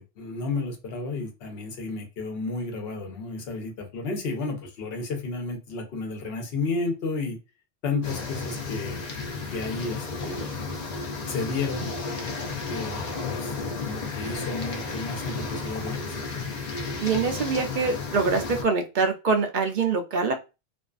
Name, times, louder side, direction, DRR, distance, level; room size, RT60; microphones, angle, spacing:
voice 1, 0.2-7.4 7.8-9.0 9.5-10.5 11.3-11.9 12.7-13.5 13.8-16.2, left 3 dB, 65° left, 0.9 m, -32 dB
sound 1, 8.0-18.6, left 4 dB, 45° left, 0.6 m, -33 dB
voice 2, 17.0-20.3, right 4 dB, 60° right, 0.6 m, -24 dB
2.5 x 2.3 x 2.3 m
omnidirectional pair, 1.1 m